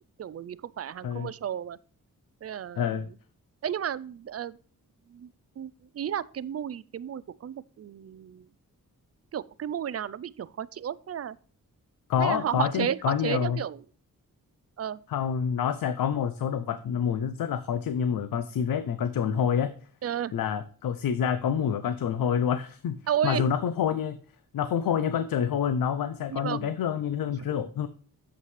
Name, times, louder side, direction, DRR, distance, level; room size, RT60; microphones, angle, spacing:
voice 1, 0.2-1.8 2.4-2.8 3.6-4.6 5.1-5.3 5.6-8.4 9.3-11.4 12.2-13.8 14.8-15.0 20.0-20.3 23.1-23.5 26.3-26.7, right 9 dB, 45° right, 0.4 m, -32 dB
voice 2, 2.8-3.1 12.1-13.6 15.1-19.7 20.3-23.0 23.2-24.2 24.5-27.9, left 8 dB, 90° left, 0.6 m, -27 dB
8.3 x 7.4 x 3.2 m
wide cardioid pair, 95°, 34 cm